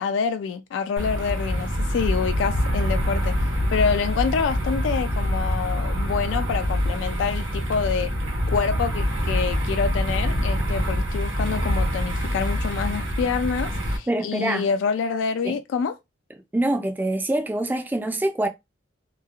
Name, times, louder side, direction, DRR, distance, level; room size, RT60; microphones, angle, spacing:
voice 1, 0.0-8.1 8.5-15.9, left 6 dB, 85° left, 0.3 m, -27 dB
sound 1, 1.0-14.0, equal, 80° right, 1.1 m, -25 dB
voice 2, 14.1-14.6 15.4-15.6 16.5-18.5, right 1 dB, 10° right, 0.3 m, -25 dB
3.0 x 2.2 x 2.3 m
head